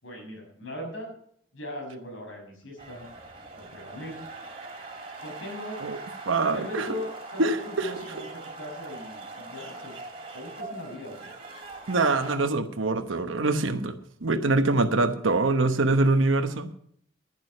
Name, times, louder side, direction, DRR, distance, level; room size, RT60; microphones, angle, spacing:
voice 1, 0.0-1.1 1.5-3.1 3.5-4.3 5.2-5.8 6.4-10.0 10.3-11.3, left 1 dB, 80° left, 1 dB, 6.2 m, -39 dB
sound 1, 2.8-12.4, right 3 dB, 30° right, 2.8 m, -41 dB
voice 2, 6.3-6.9 7.4-7.9 11.9-13.9 14.2-16.7, right 2 dB, 85° right, 8 dB, 1.0 m, -24 dB
11.5 x 11.0 x 5.4 m, 0.66 s
head